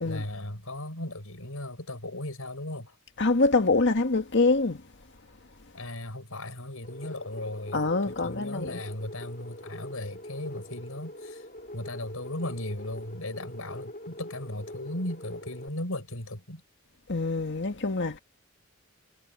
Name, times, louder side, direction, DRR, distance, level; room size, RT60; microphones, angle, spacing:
voice 1, 0.0-3.0 5.7-7.8 8.1-11.4 11.7-16.6, left 1 dB, 75° left, 6.6 m, -37 dB
voice 2, 3.2-4.8 7.7-8.8 17.1-18.2, left 3 dB, 55° left, 1.8 m, -25 dB
sound 1, 6.8-15.7, left 1 dB, 40° left, 3.0 m, -44 dB
head